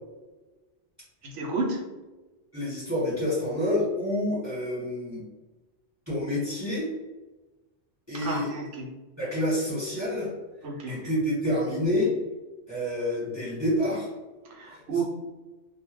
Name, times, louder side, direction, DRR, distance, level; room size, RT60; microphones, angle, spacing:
voice 1, 1.2-1.9 8.2-8.9 10.6-11.1 14.4-15.0, right 3 dB, 80° right, -1 dB, 1.0 m, -31 dB
voice 2, 2.5-5.2 6.1-6.9 8.1-8.5 9.2-10.3 10.9-12.2 12.7-14.1 14.7-14.8, left 1 dB, 15° right, -10 dB, 1.3 m, -28 dB
2.4 x 2.1 x 3.0 m, 1.2 s
omnidirectional pair, 1.2 m